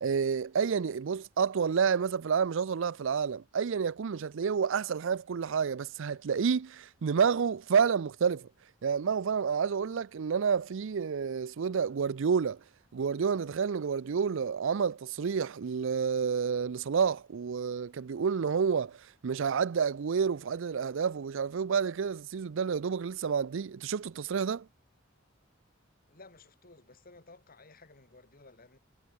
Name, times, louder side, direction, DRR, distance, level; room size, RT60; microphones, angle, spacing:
voice 1, 0.0-8.5 8.8-12.6 12.9-24.7, right 6 dB, 65° right, 0.5 m, -29 dB
voice 2, 26.1-28.8, left 3 dB, 45° left, 3.6 m, -55 dB
head